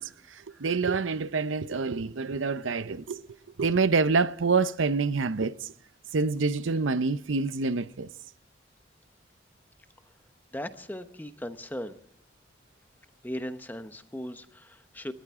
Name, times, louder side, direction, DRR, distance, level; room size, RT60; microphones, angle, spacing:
voice 1, 0.0-3.2 3.6-5.7 6.1-8.1, right 4 dB, 90° right, 0.7 m, -27 dB
voice 2, 10.5-11.9 13.2-15.1, left 1 dB, 10° left, 0.9 m, -37 dB
29.0 x 13.5 x 3.6 m
head